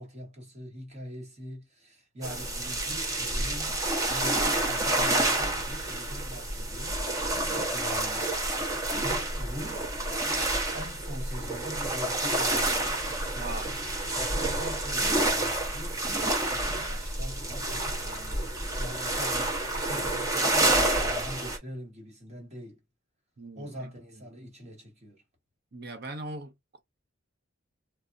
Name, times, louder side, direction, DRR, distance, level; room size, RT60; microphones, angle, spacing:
voice 1, 0.0-7.0 7.7-8.5 8.9-9.9 10.2-10.4 10.7-12.9 13.3-13.9 14.3-16.0 16.4-22.8 23.6-25.2, equal, 35° right, 1.2 m, -43 dB
sound 1, 2.2-21.6, right 1 dB, 15° right, 0.8 m, -29 dB
voice 2, 13.3-13.8 23.4-23.9 25.7-26.8, right 2 dB, 50° right, 0.7 m, -40 dB
3.5 x 2.0 x 2.6 m
head